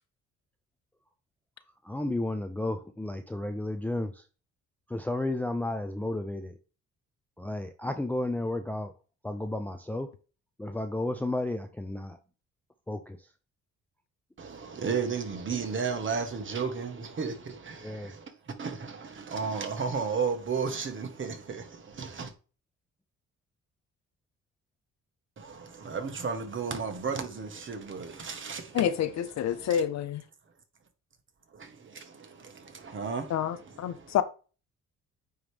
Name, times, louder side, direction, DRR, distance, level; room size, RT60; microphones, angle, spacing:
voice 1, 1.9-4.1 4.9-6.5 7.4-8.9 9.2-10.1 10.6-12.2 12.9-13.2 17.8-18.1, left 2 dB, 5° left, 0.5 m, -32 dB
voice 2, 14.4-22.3 25.4-28.9 29.5-29.8 31.5-34.2, right 5 dB, 40° right, 1.4 m, -34 dB
voice 3, 28.7-30.2 33.3-34.2, left 9 dB, 60° left, 0.6 m, -28 dB
9.0 x 3.1 x 3.5 m
cardioid pair, 90°, 30 cm